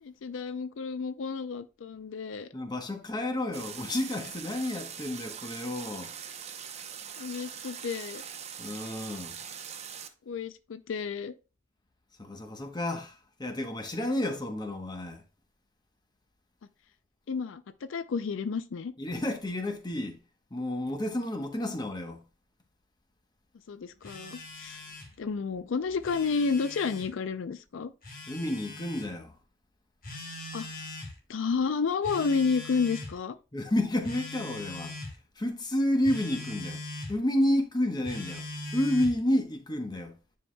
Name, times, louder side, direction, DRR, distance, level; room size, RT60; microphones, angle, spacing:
voice 1, 0.0-2.5 7.2-8.2 10.3-11.3 17.3-18.9 23.7-24.8 25.2-27.9 30.5-30.9 31.3-33.4, left 5 dB, 80° left, 0.4 m, -31 dB
voice 2, 2.5-6.1 8.6-9.3 12.2-15.2 19.0-20.2 20.5-22.2 28.3-29.3 33.5-35.0 35.4-36.8 37.1-38.4 38.7-40.1, left 1 dB, 20° left, 0.9 m, -30 dB
sound 1, 3.5-10.1, right 8 dB, 35° right, 0.7 m, -42 dB
Telephone, 24.0-25.1 25.9-27.1 28.0-29.1 30.0-31.1 32.0-33.2 34.0-35.1 36.0-37.1 38.0-39.2, left 2 dB, 50° left, 1.5 m, -41 dB
9.7 x 4.7 x 2.2 m
head